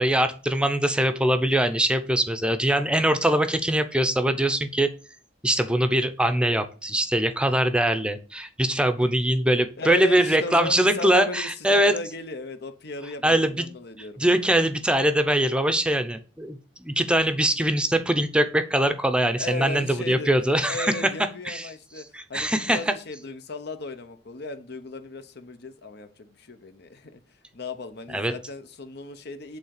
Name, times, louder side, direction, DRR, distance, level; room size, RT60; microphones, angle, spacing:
voice 1, 0.0-4.9 5.4-12.0 13.2-13.6 14.2-21.0 21.4-21.7 22.1-22.8 28.1-28.3, right 1 dB, 5° right, 9 dB, 0.7 m, -22 dB
voice 2, 9.8-14.2 19.4-20.3 20.7-27.2 27.5-29.6, left 2 dB, 60° left, 9 dB, 1.0 m, -36 dB
8.3 x 3.8 x 6.6 m, 0.37 s
head